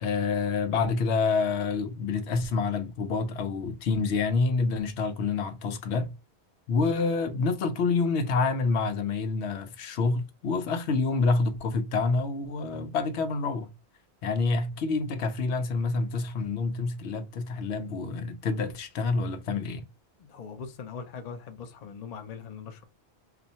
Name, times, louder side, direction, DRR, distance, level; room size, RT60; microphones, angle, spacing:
voice 1, 0.0-6.1 6.7-13.7 14.2-19.9, left 4 dB, 85° left, 0.9 m, -27 dB
voice 2, 20.2-22.8, left 6 dB, 45° left, 0.6 m, -41 dB
2.7 x 2.4 x 4.1 m
omnidirectional pair, 1.1 m